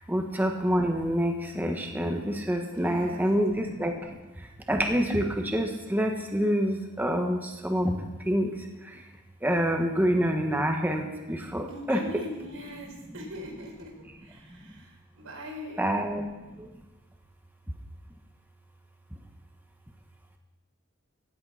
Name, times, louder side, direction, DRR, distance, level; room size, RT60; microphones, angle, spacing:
voice 1, 0.1-3.9 4.7-5.2 5.5-7.4 7.6-7.9 8.3-8.5 9.4-11.0 11.3-12.0 15.8-16.2, equal, 10° right, 2 dB, 1.2 m, -26 dB
voice 2, 2.7-3.2 11.7-13.9 14.2-16.0, equal, 90° right, 0 dB, 4.4 m, -41 dB
16.0 x 11.0 x 5.7 m, 1.2 s
head